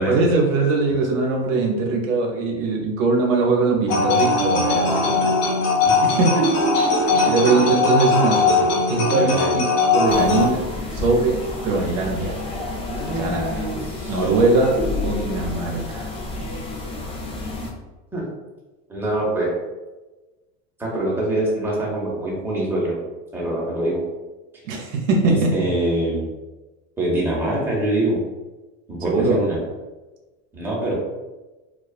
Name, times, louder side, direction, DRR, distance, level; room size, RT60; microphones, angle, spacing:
voice 1, 0.1-5.3 6.2-6.5 7.3-10.6 10.9-12.4 13.2-13.6 14.1-16.1 24.7-25.5 29.0-29.4, right 3 dB, 80° right, 1 dB, 0.6 m, -21 dB
sound 1, 3.9-10.5, left 3 dB, 75° left, 0.7 m, -19 dB
voice 2, 5.9-6.2 6.8-7.3 9.2-9.5 12.9-14.3 18.1-18.2 18.9-19.5 20.8-23.0 23.3-24.0 25.2-26.3 27.0-28.2 28.9-29.6 30.5-31.0, right 1 dB, 5° right, -5 dB, 0.8 m, -24 dB
sound 2, 10.1-17.7, left 2 dB, 15° left, 0.4 m, -30 dB
2.3 x 2.3 x 2.3 m, 1.1 s
hypercardioid pair, 95°, 38 cm